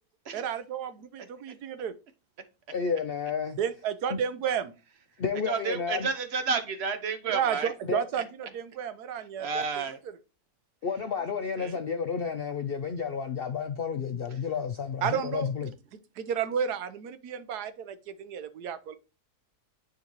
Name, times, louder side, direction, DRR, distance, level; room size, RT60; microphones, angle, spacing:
voice 1, 0.3-1.9 3.6-4.7 7.3-9.8 11.2-11.3 15.0-15.5 15.9-19.0, right 8 dB, 90° right, 1.3 m, -32 dB
voice 2, 2.7-3.6 4.1-4.2 5.2-6.1 7.9-8.0 10.8-15.7, left 6 dB, 70° left, 0.5 m, -31 dB
voice 3, 5.5-7.7 9.4-10.0 11.6-11.8, right 5 dB, 50° right, 0.9 m, -31 dB
9.6 x 3.8 x 3.0 m
omnidirectional pair, 1.6 m